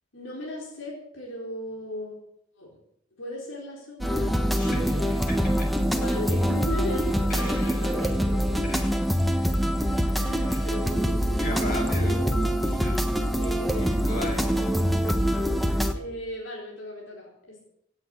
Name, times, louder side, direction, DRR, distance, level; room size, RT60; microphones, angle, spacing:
voice 1, 0.1-2.2 2.6-2.7 3.2-5.2 5.9-8.8 10.1-12.3 13.4-14.5 15.9-17.6, left 1 dB, 85° left, -3 dB, 4.2 m, -37 dB
sound 1, 4.0-15.9, equal, ahead, 1.2 m, -25 dB
voice 2, 4.5-5.7 7.3-7.8 8.6-9.0 10.4-10.6 11.4-12.2 12.6-13.3 14.0-14.7, left 1 dB, 50° left, -1 dB, 7.3 m, -35 dB
17.0 x 8.8 x 7.7 m, 0.70 s
head